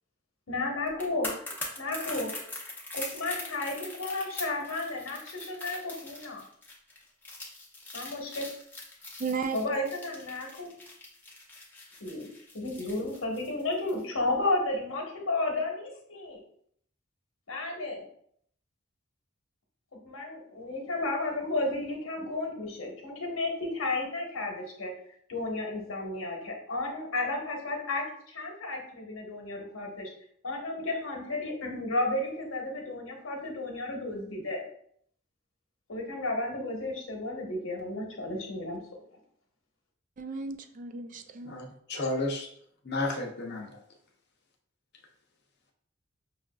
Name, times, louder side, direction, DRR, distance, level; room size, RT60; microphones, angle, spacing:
voice 1, 0.5-1.3 1.8-2.3 2.9-6.4 7.9-8.5 9.5-10.7 12.0-12.3 12.5-16.4 17.5-18.0 20.0-24.9 25.3-30.1 30.4-34.6 35.9-38.8, left 2 dB, 90° left, 0 dB, 1.0 m, -33 dB
sound 1, 0.9-14.0 14.3-14.5, left 2 dB, 10° left, 0.6 m, -42 dB
voice 2, 9.2-9.8 40.2-41.6, right 5 dB, 40° right, 7 dB, 0.3 m, -35 dB
voice 3, 41.5-42.5 42.9-43.7, left 2 dB, 55° left, 2 dB, 0.6 m, -32 dB
5.5 x 2.4 x 2.3 m, 0.65 s
head